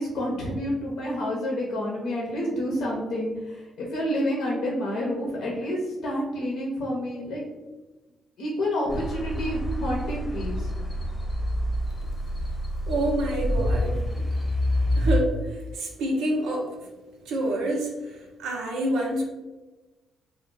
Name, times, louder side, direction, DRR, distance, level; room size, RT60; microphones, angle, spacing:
voice 1, 0.0-7.4 8.4-10.7, equal, 75° left, -3 dB, 0.6 m, -29 dB
sound 1, 8.9-15.2, equal, 20° left, 0.9 m, -27 dB
voice 2, 12.9-14.3 15.0-16.7 17.3-19.2, right 1 dB, 80° right, 0 dB, 0.6 m, -28 dB
2.4 x 2.2 x 3.7 m, 1.2 s
supercardioid pair, 55°, 0 cm